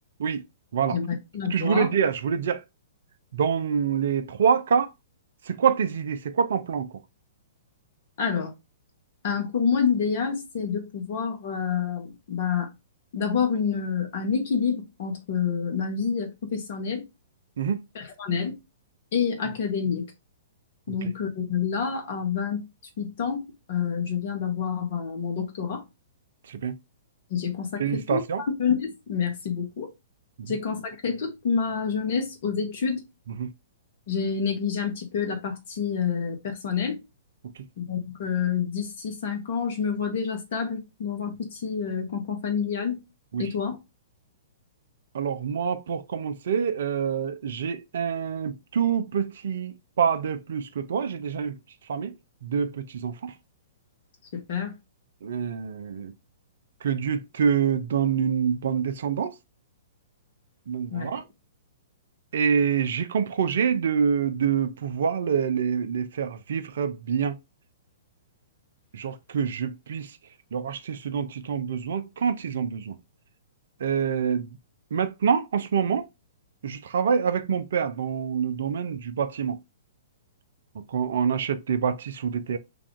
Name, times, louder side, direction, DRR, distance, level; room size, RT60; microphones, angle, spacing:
voice 1, 0.9-1.9 8.2-8.5 9.2-12.7 13.1-17.0 17.9-18.6 19.1-20.1 20.9-22.7 23.0-25.8 27.3-29.9 30.5-33.0 34.1-37.0 37.8-43.0 43.4-43.8 54.3-54.7 60.9-61.1, left 6 dB, 50° left, 1.1 m, -28 dB
voice 2, 1.5-2.6 3.3-4.9 5.5-6.9 17.6-17.8 20.9-21.1 26.5-26.8 27.8-28.4 30.4-30.5 33.4-33.5 37.6-37.7 43.3-43.5 45.1-51.6 51.9-52.1 52.4-53.3 55.2-56.1 56.8-59.3 60.7-61.2 62.3-67.4 68.9-70.2 70.5-73.0 73.8-74.5 74.9-76.1 76.6-79.6 80.9-82.6, right 7 dB, 60° right, 0.4 m, -26 dB
3.3 x 2.4 x 3.6 m
figure-of-eight pair, 115°, 0 cm